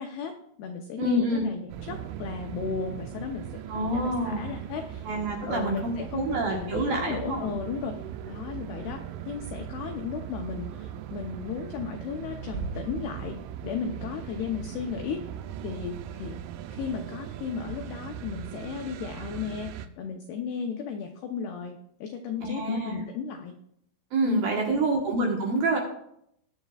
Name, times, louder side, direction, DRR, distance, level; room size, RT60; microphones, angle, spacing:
voice 1, 0.0-5.1 5.5-8.0 8.3-13.4 13.6-15.2 15.6-16.4 16.7-23.5 24.2-25.0, left 6 dB, 85° left, 4 dB, 2.3 m, -35 dB
voice 2, 1.0-1.5 3.7-4.5 5.1-7.5 22.4-23.0 24.1-25.8, right 2 dB, 65° right, 0 dB, 2.5 m, -27 dB
sound 1, 1.7-19.9, right 9 dB, 80° right, 3.0 m, -39 dB
20.0 x 9.3 x 2.4 m, 0.72 s
omnidirectional pair, 5.7 m